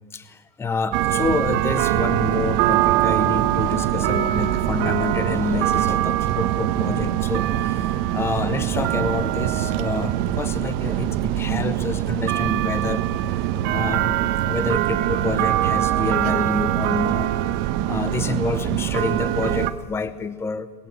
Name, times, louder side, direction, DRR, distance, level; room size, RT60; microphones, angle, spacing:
voice 1, 0.1-17.5 17.9-20.9, left 4 dB, 15° left, 13 dB, 0.8 m, -28 dB
sound 1, 0.9-19.7, right 13 dB, 60° right, 1.2 m, -23 dB
20.5 x 17.0 x 7.6 m, 1.3 s
supercardioid pair, 140°, 19 cm